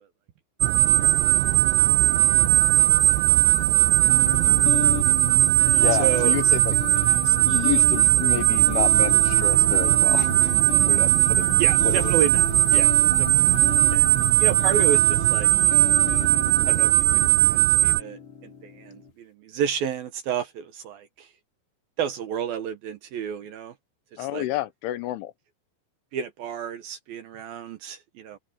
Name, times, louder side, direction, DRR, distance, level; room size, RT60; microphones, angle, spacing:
sound 1, 0.6-18.0, right 17 dB, 85° right, 3.0 m, -19 dB
voice 1, 1.8-2.2 3.7-4.1 4.4-4.5 6.0-6.3 11.6-13.6 13.9-15.5 16.7-21.3 22.0-23.7 24.1-24.5 26.1-28.4, right 8 dB, 65° right, 2.6 m, -31 dB
sound 2, 2.4-14.9, left 7 dB, 45° left, 2.4 m, -40 dB
sound 3, 4.1-19.1, left 8 dB, 65° left, 5.2 m, -34 dB
voice 2, 5.7-10.6 10.9-11.5 11.8-12.1 24.2-25.3, left 16 dB, 85° left, 3.6 m, -30 dB
open air
omnidirectional pair, 5.4 m